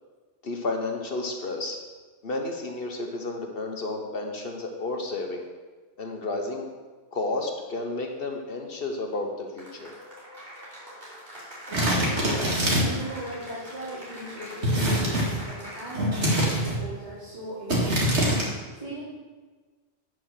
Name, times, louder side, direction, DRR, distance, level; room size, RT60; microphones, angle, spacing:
voice 1, 0.4-1.8 2.2-5.5 6.0-6.7 7.1-9.9, left 2 dB, 60° left, 2 dB, 1.2 m, -31 dB
Cheering / Applause, 9.6-16.3, equal, 55° right, 3.5 m, -43 dB
voice 2, 11.7-19.0, equal, 30° right, -14 dB, 3.5 m, -40 dB
sound 1, 11.7-13.0 14.6-15.4 15.9-16.8 17.7-18.5, equal, 85° right, 2.4 m, -24 dB
8.7 x 6.1 x 6.3 m, 1.3 s
omnidirectional pair, 1.1 m